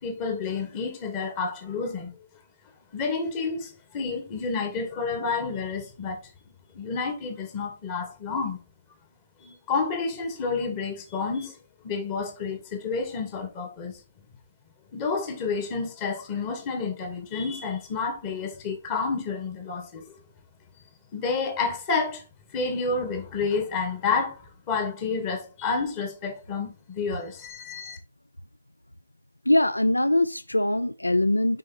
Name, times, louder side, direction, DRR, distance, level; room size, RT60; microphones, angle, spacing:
voice 1, 0.0-2.1 2.9-6.2 6.7-8.6 9.4-11.6 11.8-14.0 14.9-20.1 21.1-22.2 22.5-28.0, left 4 dB, 30° left, 2.2 m, -30 dB
voice 2, 29.5-31.6, left 1 dB, 90° left, 0.4 m, -22 dB
6.3 x 5.5 x 4.2 m
figure-of-eight pair, 130°, 0 cm